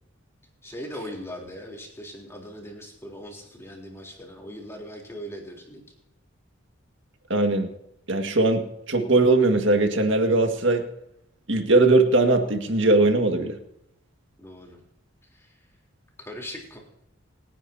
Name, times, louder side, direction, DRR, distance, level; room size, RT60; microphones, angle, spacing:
voice 1, 0.6-5.8 14.4-14.8 15.3-15.5 16.2-16.8, equal, 15° left, -1 dB, 3.6 m, -39 dB
voice 2, 7.3-7.7 8.1-10.9 11.5-13.6, right 2 dB, 60° right, 4 dB, 2.0 m, -20 dB
27.5 x 10.0 x 2.9 m, 0.83 s
head